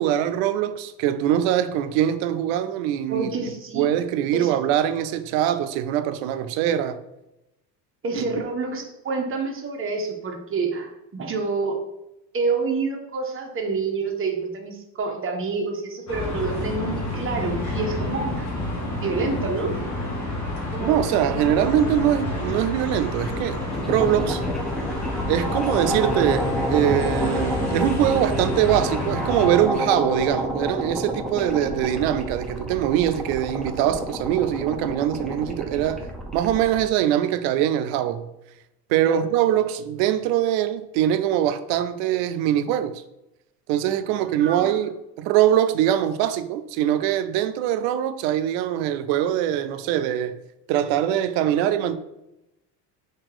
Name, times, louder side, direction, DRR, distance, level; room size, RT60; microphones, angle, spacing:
voice 1, 0.0-3.3 3.7-7.0 8.1-8.4 20.8-23.6 23.9-24.4 25.3-38.3 38.9-43.0 43.7-50.4 50.7-52.0, right 11 dB, 65° right, 0.5 m, -23 dB
voice 2, 3.1-3.9 4.3-4.5 8.0-11.8 12.3-18.5 19.0-19.7 39.0-39.2 44.1-44.8, right 4 dB, 25° right, 0.8 m, -28 dB
sound 1, 16.1-29.6, left 2 dB, 35° left, 1.3 m, -29 dB
sound 2, 20.7-36.8, equal, ahead, 0.5 m, -30 dB
2.9 x 2.8 x 3.8 m
supercardioid pair, 85°, 49 cm